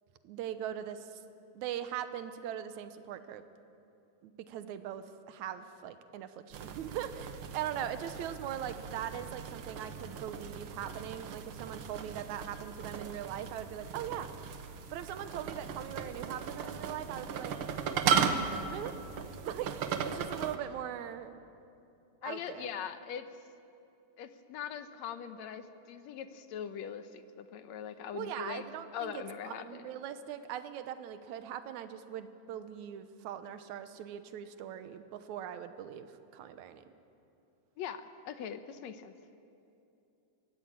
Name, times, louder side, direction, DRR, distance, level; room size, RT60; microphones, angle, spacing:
voice 1, 0.2-1.2 1.6-3.4 4.2-14.3 14.9-17.6 18.6-19.0 19.4-21.3 22.2-22.7 28.1-36.8, right 10 dB, 80° right, 10 dB, 2.3 m, -41 dB
sound 1, 6.5-20.6, right 6 dB, 60° right, 1.6 m, -37 dB
voice 2, 22.2-23.3 24.2-28.7 28.9-29.9 37.8-39.1, left 8 dB, 70° left, 10 dB, 2.0 m, -41 dB
23.0 x 17.5 x 8.8 m, 2.7 s
omnidirectional pair, 3.4 m